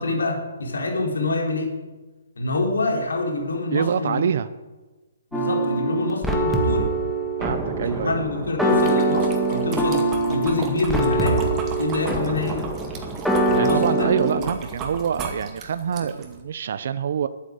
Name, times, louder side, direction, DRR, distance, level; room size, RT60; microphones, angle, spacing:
voice 1, 0.0-1.7 2.4-4.3 5.3-6.9 7.8-11.4 11.8-12.6 13.5-14.5, left 2 dB, 85° left, 1 dB, 3.8 m, -26 dB
voice 2, 3.7-4.5 7.4-8.1 13.5-17.3, right 7 dB, 60° right, 13 dB, 0.6 m, -25 dB
sound 1, 5.3-14.4, right 2 dB, ahead, 1.7 m, -23 dB
sound 2, 8.7-16.4, right 4 dB, 20° right, 2.2 m, -35 dB
11.5 x 9.3 x 8.0 m, 1.2 s
hypercardioid pair, 150°, 0 cm